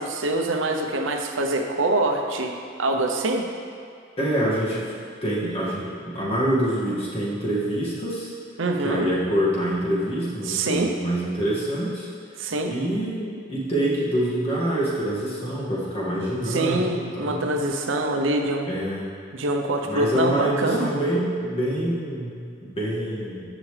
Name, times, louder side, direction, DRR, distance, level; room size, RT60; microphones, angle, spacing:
voice 1, 0.0-3.5 8.6-9.1 10.4-10.9 12.4-12.7 16.5-18.7 19.3-20.9, right 2 dB, 75° right, 3 dB, 0.8 m, -25 dB
voice 2, 4.2-4.9 5.2-8.3 8.8-12.1 12.7-17.4 18.7-19.1 19.8-23.4, right 1 dB, 30° left, -7 dB, 2.0 m, -26 dB
14.5 x 6.0 x 3.3 m, 2.3 s
head